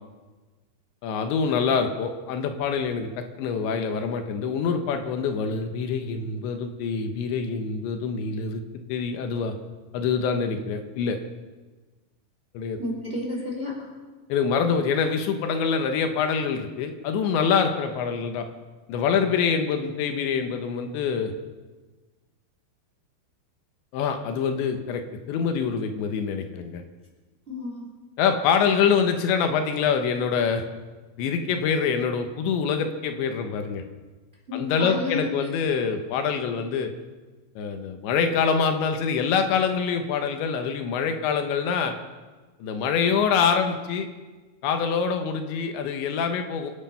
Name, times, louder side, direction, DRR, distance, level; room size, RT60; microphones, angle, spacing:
voice 1, 1.0-8.6 8.9-9.5 9.9-11.2 12.5-12.8 14.3-18.5 18.9-21.3 23.9-25.0 25.3-26.8 28.2-30.6 31.2-33.8 34.5-36.9 37.6-41.9 42.6-44.1 44.6-46.7, left 6 dB, 80° left, 6 dB, 3.4 m, -25 dB
voice 2, 12.8-13.9 27.5-27.8 34.5-35.3, left 2 dB, 15° right, -1 dB, 3.0 m, -31 dB
25.0 x 10.0 x 5.6 m, 1.3 s
omnidirectional pair, 5.2 m